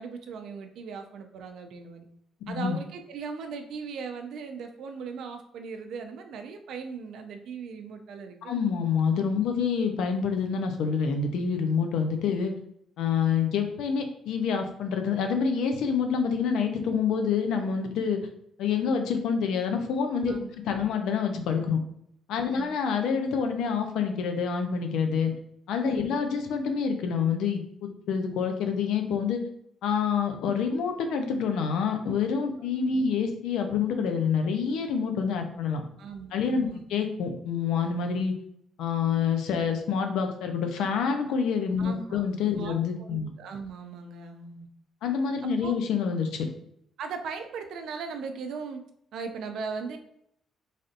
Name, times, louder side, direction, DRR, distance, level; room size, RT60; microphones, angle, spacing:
voice 1, 0.0-2.1 2.5-8.5 9.4-9.5 20.3-20.8 22.5-22.8 25.9-26.2 32.9-33.1 36.0-36.8 41.8-42.2 42.6-44.7 45.4-45.8 47.0-48.8 49.1-50.0, right 5 dB, 75° right, 6 dB, 0.4 m, -38 dB
voice 2, 2.5-2.8 8.5-12.5 13.0-18.2 18.6-21.8 22.3-25.3 25.7-29.4 29.8-35.8 36.3-38.3 38.8-43.3 45.0-46.5, left 6 dB, 85° left, 5 dB, 0.5 m, -27 dB
3.3 x 2.6 x 2.5 m, 0.73 s
cardioid pair, 90°, 0 cm